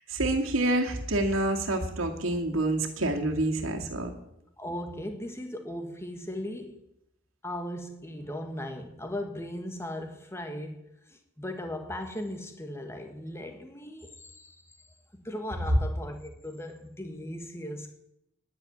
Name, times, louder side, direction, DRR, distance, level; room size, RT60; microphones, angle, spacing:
voice 1, 0.1-4.1, right 2 dB, 85° right, 2 dB, 2.3 m, -27 dB
voice 2, 4.6-6.8 7.4-10.8 11.1-14.8 15.1-17.9, left 1 dB, 15° left, 5 dB, 1.6 m, -38 dB
10.5 x 9.7 x 9.9 m, 0.81 s
head